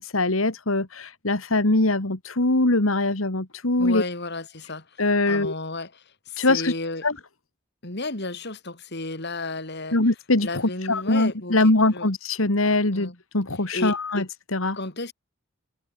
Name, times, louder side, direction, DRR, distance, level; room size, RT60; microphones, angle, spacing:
voice 1, 0.1-4.0 5.0-5.5 6.4-6.7 7.0-7.1 9.9-14.3 14.5-14.8, left 2 dB, 85° left, 2.5 m, -22 dB
voice 2, 3.8-4.9 5.3-7.1 7.8-10.0 10.4-12.1 12.9-13.2 13.7-14.3 14.7-15.1, left 2 dB, 55° left, 4.7 m, -33 dB
head